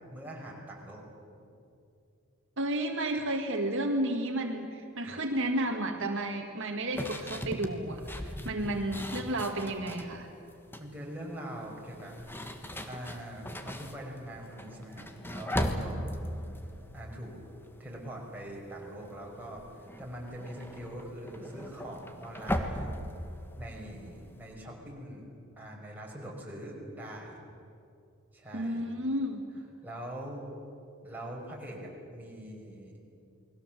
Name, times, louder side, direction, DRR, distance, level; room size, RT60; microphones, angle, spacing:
voice 1, 0.1-1.1 8.4-8.8 10.8-12.2 12.8-16.3 16.9-17.4 17.8-22.9 23.6-25.2 25.6-27.3 28.3-28.9 29.8-30.5 31.0-33.0, right 1 dB, 10° right, -2 dB, 5.2 m, -43 dB
voice 2, 2.6-10.3 28.5-29.4, right 1 dB, 60° right, 3 dB, 1.9 m, -32 dB
sound 1, 6.9-10.1 10.5-11.0 11.9-18.1 18.4-18.8 19.0-24.5, equal, 10° left, 1.5 m, -38 dB
29.5 x 20.5 x 7.6 m, 2.6 s
head